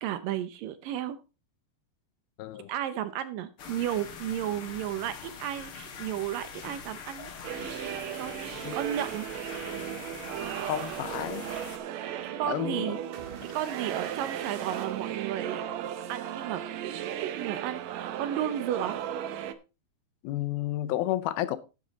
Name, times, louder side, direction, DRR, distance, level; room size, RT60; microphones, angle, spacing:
voice 1, 0.0-1.2 2.6-7.3 8.2-9.3 11.9-12.0 12.4-13.0 13.5-19.0, right 11 dB, 75° right, 2.3 m, -33 dB
voice 2, 2.4-2.7 8.6-8.8 10.7-11.4 12.5-12.9 20.2-21.6, left 14 dB, 80° left, 2.6 m, -31 dB
sound 1, 3.6-11.8, left 6 dB, 55° left, 1.6 m, -43 dB
sound 2, 7.4-19.5, right 10 dB, 90° right, 1.5 m, -36 dB
sound 3, 13.1-15.9, right 7 dB, 55° right, 2.7 m, -45 dB
11.5 x 8.5 x 4.0 m
omnidirectional pair, 4.4 m